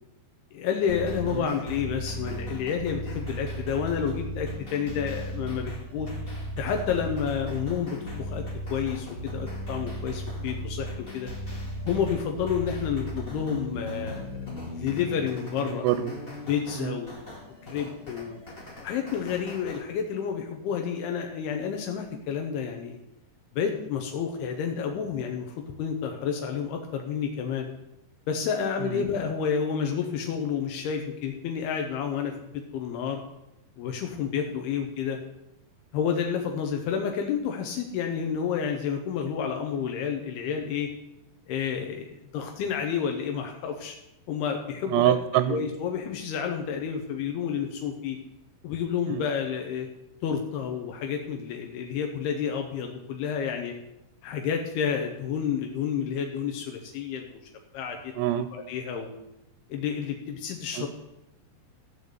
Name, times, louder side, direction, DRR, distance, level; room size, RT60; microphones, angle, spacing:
voice 1, 0.5-6.1 6.6-8.4 8.7-11.3 11.9-14.3 14.8-15.8 16.4-17.1 17.6-18.4 18.8-23.0 23.6-27.7 28.3-33.2 33.8-35.2 35.9-40.9 41.5-44.0 44.3-45.1 45.5-48.2 48.6-49.9 50.2-53.7 54.2-57.4 57.7-58.1 58.5-59.1 59.7-60.9, left 7 dB, 80° left, 3 dB, 2.8 m, -30 dB
sound 1, 0.9-19.8, equal, 20° left, 1.5 m, -37 dB
voice 2, 44.9-45.6 58.2-58.5, right 13 dB, 85° right, 12 dB, 2.7 m, -23 dB
14.5 x 5.1 x 8.0 m, 0.90 s
omnidirectional pair, 4.8 m